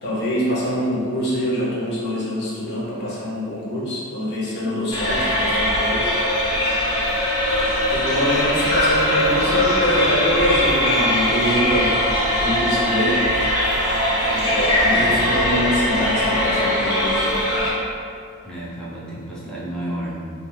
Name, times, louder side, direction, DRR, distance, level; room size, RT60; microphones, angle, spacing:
voice 1, 0.0-6.1 6.6-6.8 7.9-12.0 12.4-13.2 14.2-17.4, equal, 50° left, -7 dB, 0.6 m, -24 dB
sound 1, 4.9-17.7, left 1 dB, 80° left, 1.0 m, -20 dB
voice 2, 14.8-15.2 18.4-20.2, right 1 dB, 5° left, -8 dB, 0.4 m, -32 dB
2.3 x 2.3 x 3.0 m, 2.3 s
head